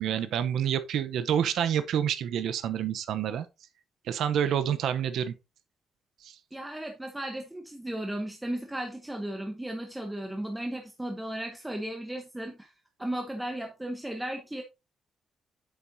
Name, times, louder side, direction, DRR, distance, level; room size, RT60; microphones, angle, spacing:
voice 1, 0.0-3.5 4.1-5.3 6.2-6.4, right 9 dB, 70° right, 0.7 m, -28 dB
voice 2, 6.5-12.7 13.0-14.6, right 1 dB, 5° right, 0.8 m, -35 dB
8.3 x 7.3 x 2.6 m
cardioid pair, 160°, 0 cm